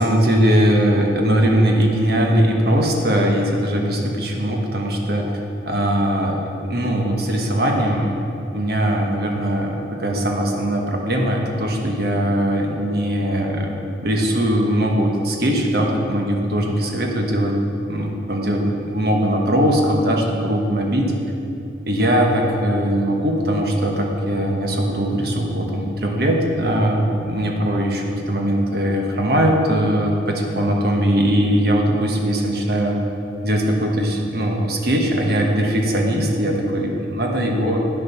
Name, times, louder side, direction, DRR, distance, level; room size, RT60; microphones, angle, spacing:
voice 1, 0.0-5.3 5.7-8.2 8.5-13.7 14.0-17.6 17.9-21.1 21.9-33.0 33.4-37.9, equal, 55° right, 0 dB, 1.3 m, -20 dB
9.3 x 6.8 x 5.9 m, 2.8 s
head